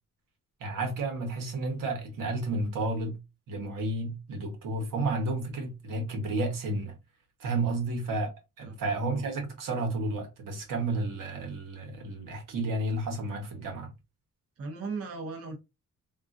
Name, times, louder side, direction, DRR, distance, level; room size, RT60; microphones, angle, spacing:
voice 1, 0.6-3.2 3.5-7.0 7.4-8.3 8.6-13.9, right 2 dB, 75° right, 1.2 m, -31 dB
voice 2, 14.6-15.6, right 4 dB, 45° right, 0.7 m, -37 dB
3.7 x 2.4 x 2.5 m
cardioid pair, 145°, 33 cm